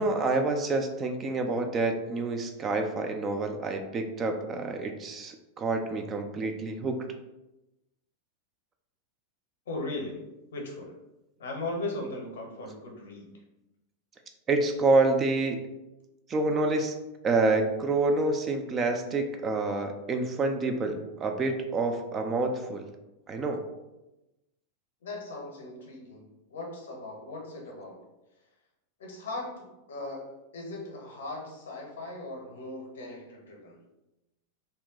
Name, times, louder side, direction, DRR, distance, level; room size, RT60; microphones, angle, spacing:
voice 1, 0.0-7.0 14.5-15.6 16.3-16.9 17.2-22.9 23.3-23.6, right 3 dB, 25° right, 5 dB, 0.4 m, -27 dB
voice 2, 9.7-10.2 10.5-11.0 11.4-13.3 25.0-28.1 29.0-33.8, left 2 dB, 60° left, 1 dB, 0.8 m, -38 dB
2.7 x 2.1 x 3.9 m, 0.98 s
figure-of-eight pair, 90°, 0 cm